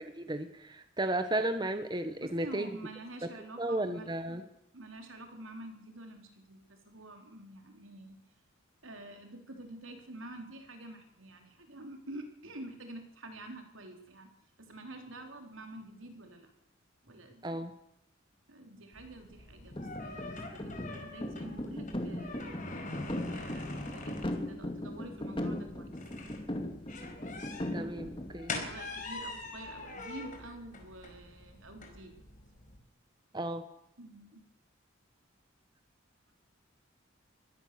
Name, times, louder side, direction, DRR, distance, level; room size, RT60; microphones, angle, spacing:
voice 1, 0.0-2.7 3.2-3.3 3.6-4.4 17.4-17.7 27.7-28.5 33.3-33.6, right 1 dB, 20° right, 9 dB, 1.3 m, -34 dB
voice 2, 2.2-4.4 4.7-8.2 8.8-14.3 14.6-16.5 17.0-17.7 18.5-22.5 23.3-26.0 28.6-32.2 34.0-34.4, right 1 dB, 85° right, 5 dB, 3.8 m, -48 dB
sound 1, 18.9-32.8, left 3 dB, 40° left, 4.8 m, -45 dB
sound 2, 19.7-28.3, left 1 dB, 25° left, 2.5 m, -38 dB
23.5 x 16.5 x 6.9 m, 0.84 s
head